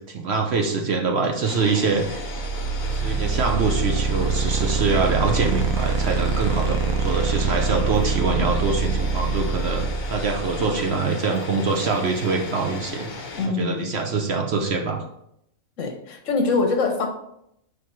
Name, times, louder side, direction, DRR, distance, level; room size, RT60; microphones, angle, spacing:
voice 1, 0.1-2.3 2.9-15.0, right 4 dB, 55° right, 3 dB, 0.9 m, -24 dB
sound 1, 1.4-13.5, left 3 dB, 40° left, 0.8 m, -36 dB
sound 2, 2.0-10.9, right 5 dB, 90° right, 1.2 m, -25 dB
voice 2, 13.4-13.9 15.8-17.1, left 4 dB, 65° left, 4 dB, 1.2 m, -23 dB
4.7 x 4.6 x 4.4 m, 0.78 s
omnidirectional pair, 1.4 m